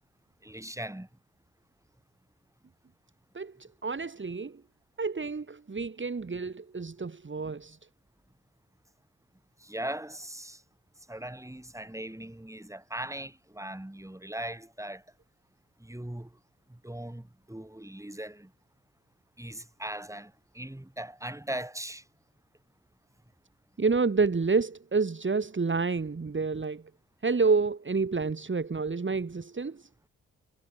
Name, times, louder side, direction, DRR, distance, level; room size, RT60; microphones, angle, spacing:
voice 1, 0.4-1.1 9.6-10.6 11.1-15.0 15.8-16.3 16.7-18.5 19.4-22.0, right 1 dB, 10° right, 7.5 m, -39 dB
voice 2, 3.8-4.6 5.0-7.8 23.8-26.8 27.2-29.9, right 4 dB, 35° right, 3.6 m, -29 dB
hypercardioid pair, 40°, 33 cm